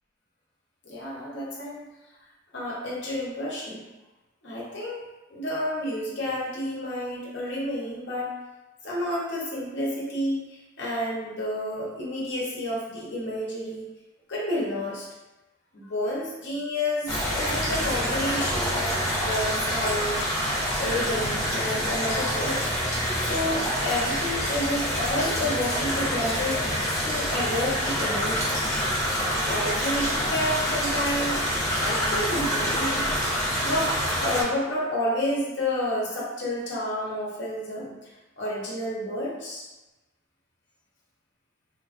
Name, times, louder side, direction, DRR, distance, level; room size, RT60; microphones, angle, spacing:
voice 1, 0.8-1.9 2.5-3.8 4.4-8.3 8.8-13.9 14.3-15.1 15.7-20.2 20.8-22.6 23.2-26.6 27.0-28.8 29.4-31.4 31.8-33.1 33.6-39.6, left 1 dB, 55° left, -5 dB, 0.8 m, -30 dB
sound 1, 17.1-34.4, equal, 15° left, 0.6 m, -27 dB
3.2 x 2.3 x 2.4 m, 1.1 s
head